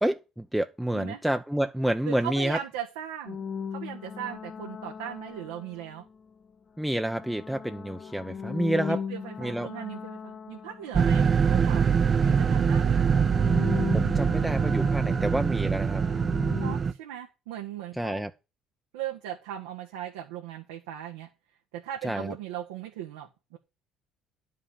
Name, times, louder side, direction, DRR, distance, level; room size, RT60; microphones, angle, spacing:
voice 1, 0.0-2.6 6.8-9.0 9.4-9.7 13.9-16.0 18.0-18.3 22.0-22.3, right 1 dB, 5° right, 0.9 m, -28 dB
voice 2, 2.0-3.4 3.7-6.0 8.9-11.9 12.2-13.3 16.6-18.2 18.9-21.3 21.7-23.6, right 11 dB, 85° right, 1.4 m, -38 dB
sound 1, 3.3-6.2 6.8-11.6 11.9-16.8, left 6 dB, 40° left, 1.6 m, -38 dB
sound 2, 10.9-16.9, right 6 dB, 40° right, 0.8 m, -23 dB
11.0 x 5.5 x 7.1 m
hypercardioid pair, 60°, 0 cm